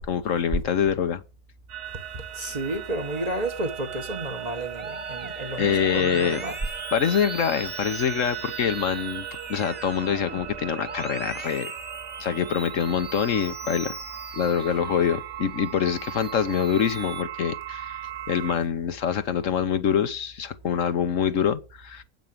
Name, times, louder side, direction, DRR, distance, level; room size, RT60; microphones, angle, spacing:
voice 1, 0.1-1.2 5.6-6.4 6.9-9.2 9.5-11.7 12.2-14.0 14.3-18.0 18.3-22.0, left 8 dB, 65° left, 1.3 m, -25 dB
sound 1, 1.7-18.6, right 11 dB, 60° right, 1.0 m, -37 dB
voice 2, 2.1-6.6, right 1 dB, 30° right, 1.5 m, -32 dB
Musical instrument, 4.8-15.2 15.7-17.2, right 1 dB, 10° right, 0.5 m, -41 dB
9.1 x 8.3 x 7.7 m
omnidirectional pair, 1.5 m